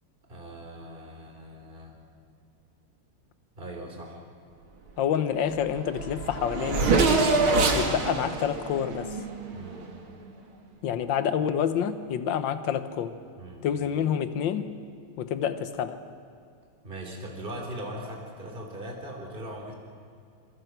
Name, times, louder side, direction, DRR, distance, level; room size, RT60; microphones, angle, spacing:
voice 1, 0.3-2.0 3.6-4.2 9.5-9.9 13.4-13.6 16.8-19.7, right 1 dB, 25° right, 1 dB, 3.4 m, -40 dB
voice 2, 5.0-7.3 7.7-9.2 10.8-13.2 13.6-14.7 15.2-16.0, left 8 dB, 60° left, 11 dB, 1.7 m, -28 dB
Race car auto racing / Accelerating revving vroom, 5.6-5.7 5.9-9.9, right 3 dB, 70° right, 2.9 m, -25 dB
26.0 x 23.5 x 6.0 m, 2.4 s
omnidirectional pair, 2.4 m